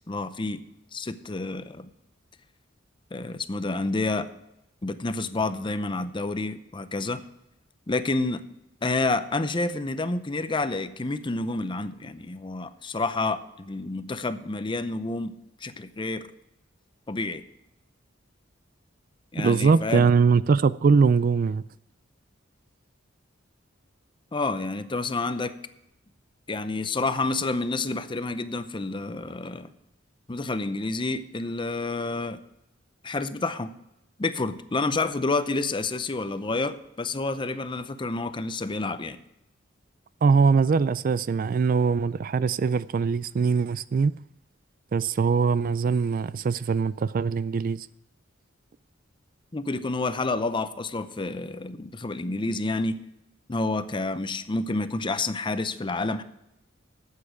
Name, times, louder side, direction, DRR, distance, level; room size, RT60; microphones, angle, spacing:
voice 1, 0.1-0.6 0.9-1.9 3.1-4.3 4.8-7.2 7.9-8.4 8.8-15.3 15.6-16.3 17.1-17.4 19.3-20.1 24.3-25.5 26.5-29.7 30.3-32.4 33.0-33.7 34.2-39.2 49.5-53.0 53.5-56.2, left 3 dB, 25° left, 0.6 m, -29 dB
voice 2, 19.4-21.6 40.2-44.2 44.9-47.9, right 5 dB, 45° right, 0.3 m, -22 dB
12.5 x 8.5 x 4.9 m
head